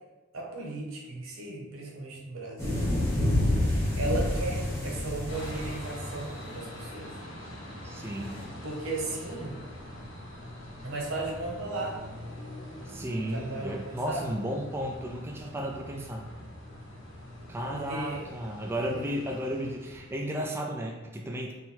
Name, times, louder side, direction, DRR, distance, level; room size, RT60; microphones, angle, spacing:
voice 1, 0.3-2.9 3.6-7.1 8.0-8.1 8.6-9.6 10.8-12.0 13.3-14.2 17.7-18.3 18.9-19.0, right 2 dB, 90° right, -1 dB, 0.9 m, -36 dB
sound 1, 2.6-6.3 8.2-8.4, left 1 dB, 15° left, 1.1 m, -28 dB
sound 2, 5.3-20.4, left 1 dB, 70° left, 0.8 m, -44 dB
voice 2, 7.8-8.3 12.8-16.3 17.5-21.5, equal, 10° right, 0 dB, 0.3 m, -34 dB
3.9 x 2.2 x 4.1 m, 1.2 s
head